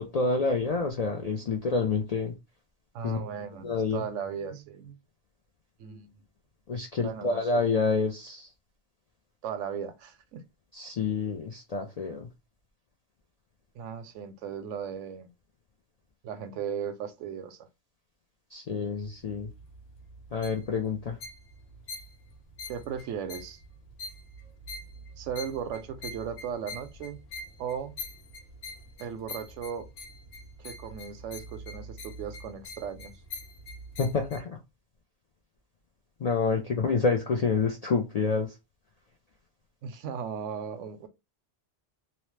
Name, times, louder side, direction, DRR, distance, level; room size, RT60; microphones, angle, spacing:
voice 1, 0.0-2.3 3.0-3.2 3.6-4.0 6.7-8.5 10.7-12.3 18.5-19.5 20.3-21.2 34.0-34.6 36.2-38.5, left 4 dB, 65° left, 0.3 m, -28 dB
voice 2, 2.9-5.0 5.8-6.2 7.0-7.7 9.4-10.4 13.7-15.3 16.2-17.7 22.7-23.6 25.2-27.2 27.6-28.0 29.0-29.9 30.6-33.1 39.8-41.1, right 7 dB, 90° right, 0.9 m, -37 dB
sound 1, 19.0-34.4, left 2 dB, 90° left, 1.0 m, -44 dB
2.8 x 2.0 x 3.1 m
omnidirectional pair, 1.2 m